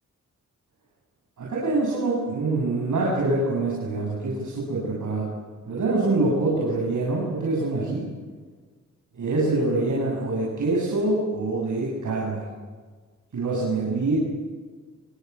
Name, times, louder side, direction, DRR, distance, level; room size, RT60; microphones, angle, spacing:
voice 1, 1.4-5.3 5.7-8.1 9.1-12.5 13.3-14.2, right 2 dB, 75° right, -4 dB, 7.8 m, -25 dB
25.5 x 25.0 x 8.4 m, 1.5 s
wide cardioid pair, 170°, 31 cm